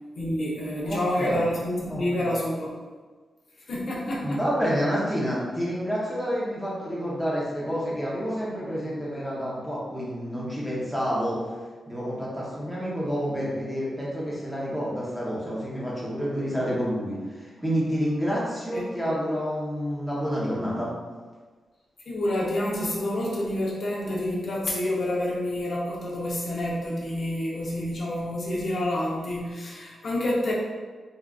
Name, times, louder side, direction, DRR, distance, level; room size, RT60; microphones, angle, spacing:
voice 1, 0.2-2.8 3.7-4.4 18.7-18.8 22.1-30.5, left 1 dB, 50° left, -4 dB, 0.6 m, -28 dB
voice 2, 0.9-1.4 1.9-2.3 4.2-11.4 11.9-20.9, equal, 5° right, -7 dB, 0.7 m, -29 dB
3.6 x 2.3 x 2.3 m, 1.4 s
wide cardioid pair, 160°, 0 cm